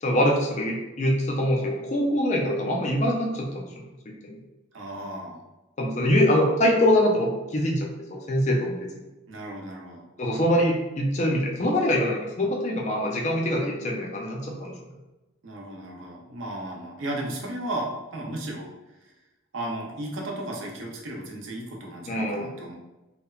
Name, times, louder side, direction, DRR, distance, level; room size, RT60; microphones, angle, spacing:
voice 1, 0.0-4.4 5.8-9.0 10.2-14.7 22.1-22.5, equal, 35° left, 0 dB, 0.3 m, -24 dB
voice 2, 4.7-5.4 9.3-10.0 15.4-18.7 19.0-19.1 19.5-22.8, right 1 dB, 65° right, -1 dB, 0.5 m, -34 dB
2.7 x 2.1 x 2.3 m, 1.0 s
head